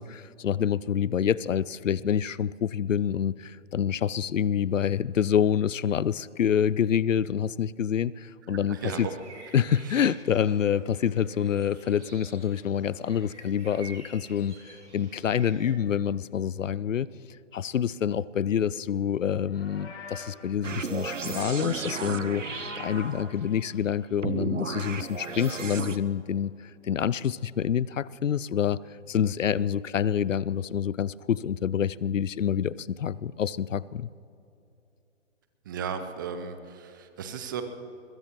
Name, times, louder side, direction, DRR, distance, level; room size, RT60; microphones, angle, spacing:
voice 1, 0.0-9.1 9.5-17.1 17.5-26.5 26.8-28.8 29.1-34.1, left 8 dB, 85° left, 21 dB, 0.5 m, -27 dB
voice 2, 8.7-9.1 9.8-10.1 35.6-37.6, right 7 dB, 15° right, 8 dB, 0.6 m, -35 dB
sound 1, 8.9-15.7, right 3 dB, 65° right, 4.3 m, -50 dB
Livestock farm animals working animals, 19.4-20.4 21.7-23.3, left 3 dB, 60° left, 3.9 m, -44 dB
sound 2, 20.6-23.5 24.2-26.0, right 5 dB, 90° right, 0.9 m, -34 dB
22.0 x 21.5 x 3.0 m, 2.6 s
figure-of-eight pair, 140°, 37 cm